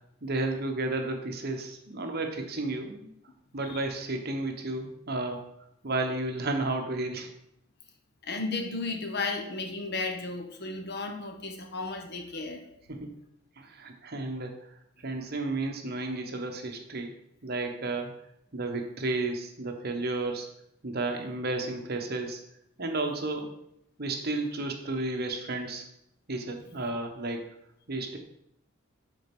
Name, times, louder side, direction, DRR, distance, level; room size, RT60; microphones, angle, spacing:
voice 1, 0.2-3.1 3.5-5.4 5.8-7.3 12.9-13.1 13.6-14.5 15.0-17.1 17.4-18.1 18.5-20.5 20.8-22.4 22.8-23.5 24.0-25.9 26.3-27.4 27.9-28.2, right 2 dB, 50° right, 3 dB, 1.1 m, -32 dB
voice 2, 8.2-12.6, left 3 dB, 55° left, 4 dB, 1.0 m, -34 dB
6.5 x 4.4 x 6.0 m, 0.76 s
head